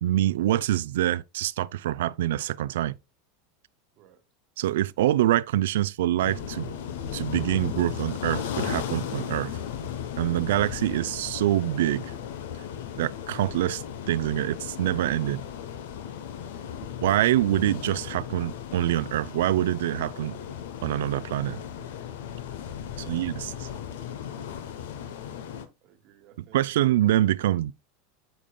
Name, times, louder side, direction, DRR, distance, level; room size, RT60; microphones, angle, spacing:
voice 1, 0.0-3.0 4.6-6.7 7.1-9.6 10.2-12.1 13.0-15.4 17.0-20.4 20.8-21.6 23.0-23.5 26.5-27.7, right 13 dB, 70° right, 0.3 m, -25 dB
sound 1, 6.2-25.7, left 9 dB, 70° left, 0.8 m, -36 dB
voice 2, 16.5-16.9 22.8-23.7 25.0-25.5 25.8-26.6, right 9 dB, 55° right, 1.2 m, -56 dB
8.4 x 7.3 x 2.2 m
hypercardioid pair, 85°, 0 cm